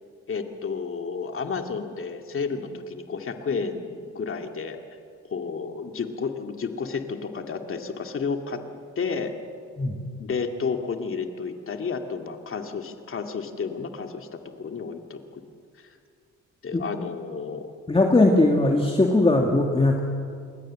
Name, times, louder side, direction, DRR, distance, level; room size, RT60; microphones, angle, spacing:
voice 1, 0.3-4.8 5.3-8.6 9.0-9.3 10.2-15.4 15.8-16.0 16.6-17.7, left 5 dB, 45° left, 5 dB, 2.4 m, -31 dB
voice 2, 17.9-20.0, left 2 dB, 20° left, 1 dB, 2.3 m, -19 dB
28.0 x 21.0 x 7.6 m, 2.3 s
cardioid pair, 90°, 30 cm